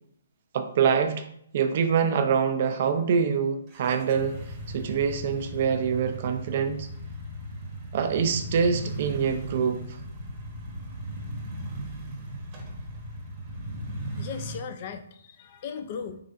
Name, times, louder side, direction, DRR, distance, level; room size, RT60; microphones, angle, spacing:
voice 1, 0.5-1.2 1.5-4.4 4.7-6.9 7.9-10.0, right 6 dB, 45° right, 8 dB, 0.4 m, -25 dB
sound 1, 3.7-14.6, right 1 dB, 25° right, 0.8 m, -37 dB
voice 2, 14.2-16.2, left 6 dB, 40° left, 7 dB, 0.4 m, -37 dB
3.8 x 3.1 x 2.5 m, 0.69 s
hypercardioid pair, 155°, 0 cm